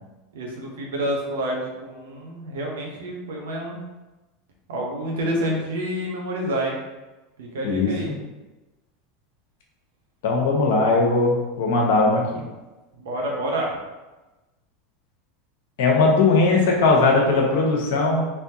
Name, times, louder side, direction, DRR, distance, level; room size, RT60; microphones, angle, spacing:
voice 1, 0.3-3.8 4.7-6.8 7.4-8.1 12.9-13.8, right 1 dB, 75° right, -1 dB, 0.9 m, -28 dB
voice 2, 7.6-8.2 10.2-12.4 15.8-18.3, left 3 dB, 70° left, -1 dB, 0.9 m, -19 dB
3.4 x 3.0 x 2.8 m, 1.1 s
hypercardioid pair, 85°, 0 cm